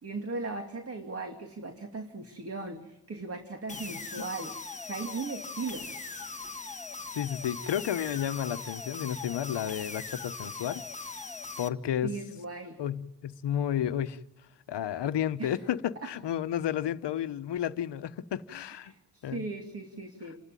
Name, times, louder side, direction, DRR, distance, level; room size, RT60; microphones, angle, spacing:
voice 1, 0.0-4.5 4.8-6.0 12.0-12.8 15.4-15.6 16.0-16.1 18.9-20.4, right 3 dB, 30° right, 2.4 m, -38 dB
sound 1, 3.7-11.7, left 3 dB, 15° left, 1.2 m, -40 dB
voice 2, 7.1-10.8 11.6-12.2 12.8-14.2 14.7-18.9 19.2-19.5, left 10 dB, 70° left, 1.1 m, -32 dB
28.5 x 12.5 x 9.1 m
cardioid pair, 105°, 44 cm